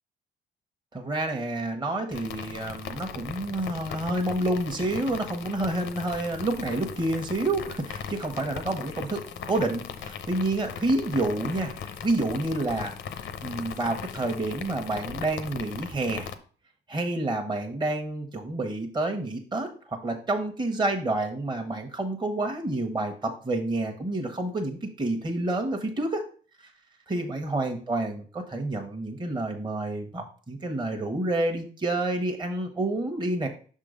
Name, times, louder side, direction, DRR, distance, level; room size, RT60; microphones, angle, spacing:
voice 1, 0.9-9.2 9.5-11.7 12.0-12.9 13.4-16.3 16.9-26.2 26.6-26.7 27.1-33.5, right 2 dB, 20° right, 3 dB, 1.0 m, -29 dB
sound 1, 2.1-16.4, left 8 dB, 75° left, 0.8 m, -39 dB
6.0 x 3.8 x 5.0 m, 0.41 s
cardioid pair, 90°, 20 cm